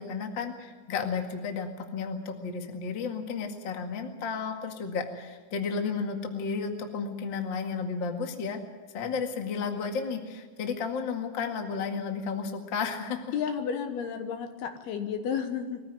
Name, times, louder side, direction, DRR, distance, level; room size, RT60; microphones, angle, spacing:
voice 1, 0.0-8.6 8.9-13.4, left 5 dB, 45° left, 4 dB, 1.6 m, -33 dB
voice 2, 13.3-15.8, left 7 dB, 70° left, 6 dB, 3.0 m, -32 dB
23.0 x 15.0 x 9.1 m, 1.4 s
omnidirectional pair, 5.1 m